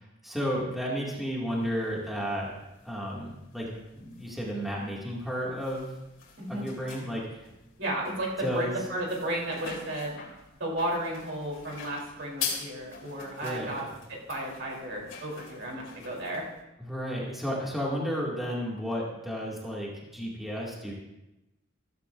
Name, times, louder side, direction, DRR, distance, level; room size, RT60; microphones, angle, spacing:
voice 1, 0.0-2.5 2.8-5.9 6.5-7.5 8.4-8.8 13.4-14.0 16.8-20.9, equal, ahead, -5 dB, 2.3 m, -33 dB
sound 1, 1.5-16.6, left 6 dB, 80° left, 2.9 m, -44 dB
voice 2, 7.8-10.2 10.6-16.4, right 1 dB, 65° right, -2 dB, 3.6 m, -33 dB
15.0 x 14.5 x 2.6 m, 0.95 s
head